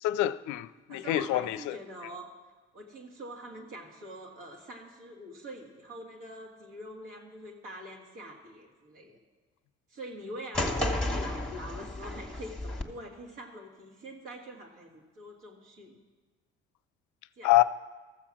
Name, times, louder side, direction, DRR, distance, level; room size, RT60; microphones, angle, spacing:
voice 1, 0.0-1.8 17.4-17.6, left 15 dB, 60° left, 0.5 m, -26 dB
voice 2, 0.9-2.3 2.7-9.2 9.9-16.0 17.4-17.5, right 1 dB, 70° right, 2.0 m, -44 dB
sound 1, 10.5-12.8, left 1 dB, 5° left, 1.4 m, -32 dB
14.0 x 7.2 x 6.0 m
hypercardioid pair, 50°, 33 cm